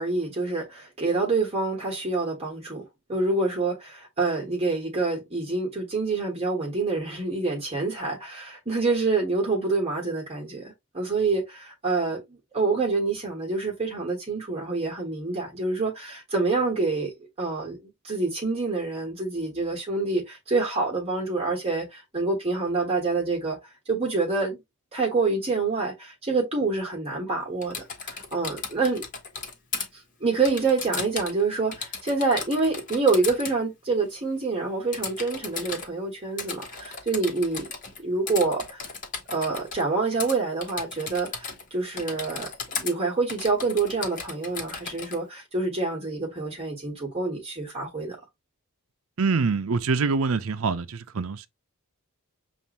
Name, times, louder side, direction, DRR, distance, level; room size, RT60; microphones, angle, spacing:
voice 1, 0.0-2.8 3.1-17.1 17.4-23.6 23.9-24.6 24.9-29.0 29.9-37.7 38.0-38.9 39.3-48.2, right 3 dB, 30° right, 1.3 m, -27 dB
Typing, 27.6-29.9 30.5-31.4 31.7-33.6 34.9-35.9 36.4-38.0 38.3-39.8 40.2-40.4 40.6-41.7 42.0-42.9 43.3-45.2, left 5 dB, 35° left, 1.2 m, -35 dB
voice 2, 49.2-51.5, right 4 dB, 70° right, 0.6 m, -25 dB
6.9 x 2.5 x 2.9 m
head